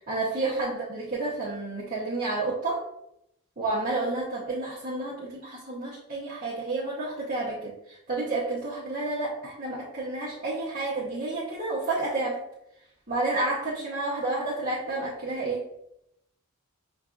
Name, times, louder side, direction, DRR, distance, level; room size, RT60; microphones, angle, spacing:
voice 1, 0.0-2.8 3.6-12.4 13.1-15.7, right 2 dB, 40° right, -9 dB, 0.9 m, -30 dB
6.7 x 2.5 x 2.4 m, 0.80 s
head